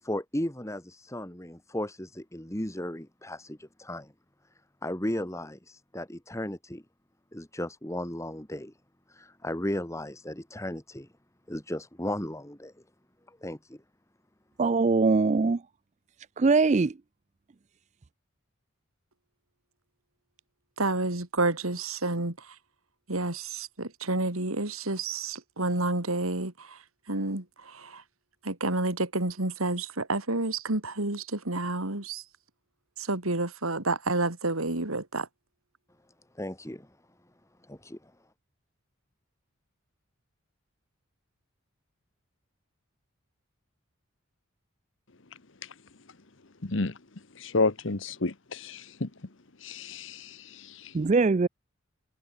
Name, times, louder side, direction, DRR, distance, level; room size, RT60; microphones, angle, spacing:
voice 1, 0.0-4.1 4.8-6.8 7.3-8.7 9.1-11.1 11.5-12.7 13.3-13.8 36.3-36.9 37.6-38.1, left 1 dB, 15° left, 2.3 m, -35 dB
voice 2, 14.6-15.6 16.4-17.0 50.9-51.5, right 4 dB, 35° right, 0.4 m, -22 dB
voice 3, 20.8-22.5 23.1-28.0 28.4-32.2 33.0-35.3, right 2 dB, 85° right, 3.4 m, -30 dB
voice 4, 46.6-46.9 47.4-49.1 49.6-50.9, left 3 dB, 60° left, 1.2 m, -31 dB
head